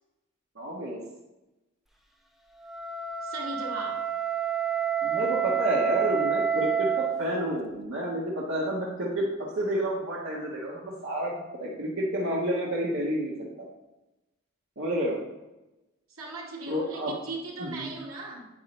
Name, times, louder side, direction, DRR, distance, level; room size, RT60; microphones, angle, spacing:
voice 1, 0.5-1.0 5.0-9.3 9.5-11.3 11.6-13.3 14.8-15.2 16.7-17.1 17.6-17.9, equal, 65° right, -4 dB, 1.6 m, -29 dB
Wind instrument woodwind instrument, 2.6-7.2, right 8 dB, ahead, 0.9 m, -28 dB
voice 2, 3.2-4.1 16.1-18.5, right 2 dB, 85° right, -2 dB, 2.2 m, -38 dB
9.5 x 8.8 x 3.3 m, 1.0 s
head